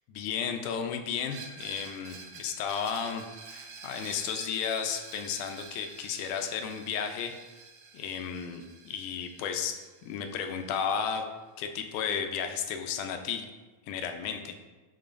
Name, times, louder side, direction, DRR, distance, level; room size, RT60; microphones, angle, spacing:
voice 1, 0.1-3.2 3.5-7.3 7.9-11.3 11.6-13.5 13.9-14.5, left 7 dB, 85° left, 6 dB, 2.1 m, -33 dB
Screech, 1.3-10.9, right 4 dB, 90° right, 2.2 m, -48 dB
10.5 x 3.9 x 2.5 m, 1.3 s
omnidirectional pair, 3.6 m